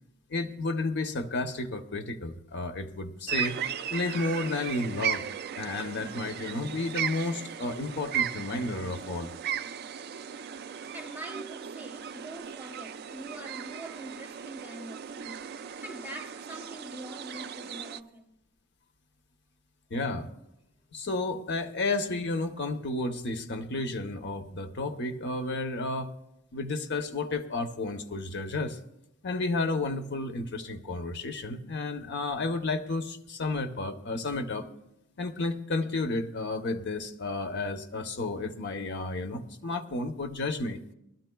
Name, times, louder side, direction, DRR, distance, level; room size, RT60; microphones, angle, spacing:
voice 1, 0.3-3.6 3.9-5.2 5.6-9.3 19.9-20.3 20.9-26.1 26.5-28.8 29.2-34.7 35.2-40.8, left 2 dB, 55° left, 0.8 m, -32 dB
sound 1, 3.3-18.0, right 9 dB, 50° right, 0.4 m, -36 dB
voice 2, 10.7-18.3, right 1 dB, 10° right, 0.8 m, -44 dB
21.0 x 13.0 x 2.2 m
head